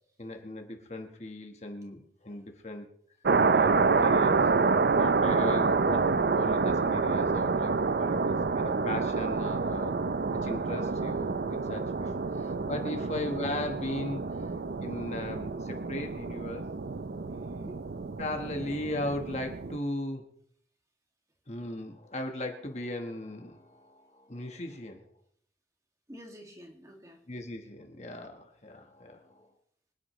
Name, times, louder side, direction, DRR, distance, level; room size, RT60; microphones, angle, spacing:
voice 1, 0.2-2.9 3.5-4.6 5.0-9.9 10.3-14.5 14.8-16.7 18.2-20.2 21.5-25.1 27.3-29.4, left 1 dB, 40° left, 4 dB, 1.4 m, -38 dB
sound 1, 3.2-19.8, right 4 dB, 60° right, 0.5 m, -28 dB
voice 2, 5.3-5.6 13.0-13.3 17.3-17.8 26.1-27.2, equal, 20° right, 1 dB, 2.1 m, -49 dB
25.5 x 9.8 x 3.2 m, 0.66 s
head